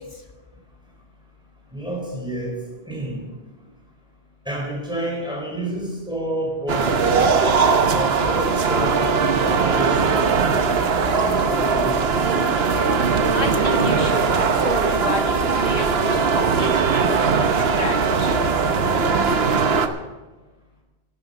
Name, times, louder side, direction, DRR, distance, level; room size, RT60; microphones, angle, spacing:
voice 1, 1.7-2.6 2.9-3.2 4.5-7.4 7.9-10.3 11.0-12.5, right 1 dB, 5° right, -1 dB, 4.3 m, -29 dB
sound 1, 6.7-19.9, right 5 dB, 70° right, 1.2 m, -20 dB
voice 2, 13.3-18.4, left 2 dB, 40° left, 3 dB, 1.9 m, -30 dB
12.0 x 10.5 x 6.9 m, 1.2 s
omnidirectional pair, 1.1 m